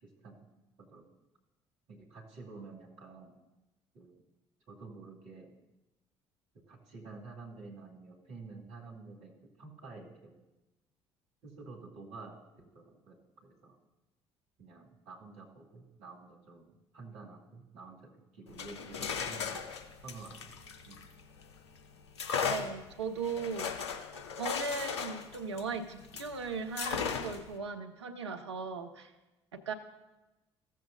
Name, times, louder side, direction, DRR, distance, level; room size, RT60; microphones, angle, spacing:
voice 1, 0.0-0.5 0.8-1.1 1.9-3.4 3.9-4.2 4.7-5.6 6.5-10.4 11.4-13.8 14.6-19.7 20.0-21.0, right 3 dB, 55° right, -2 dB, 2.2 m, -50 dB
sound 1, 18.5-21.5 22.2-26.3 26.8-27.5, left 6 dB, 80° left, 0.6 m, -37 dB
voice 2, 22.5-24.0 24.4-29.1 29.5-29.7, right 4 dB, 80° right, 7 dB, 0.6 m, -38 dB
14.5 x 7.4 x 2.6 m, 1.0 s
figure-of-eight pair, 50°, 14 cm